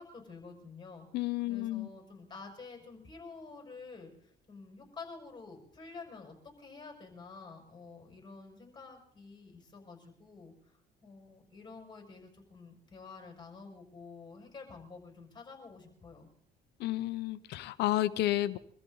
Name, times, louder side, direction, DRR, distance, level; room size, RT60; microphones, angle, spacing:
voice 1, 0.0-1.1 1.5-4.1 4.5-10.5 11.0-16.3, left 4 dB, 25° left, 3 dB, 6.0 m, -49 dB
voice 2, 1.1-1.9 16.8-18.6, left 15 dB, 80° left, 14 dB, 0.9 m, -31 dB
25.0 x 14.0 x 4.0 m, 0.66 s
cardioid pair, 110°, 17 cm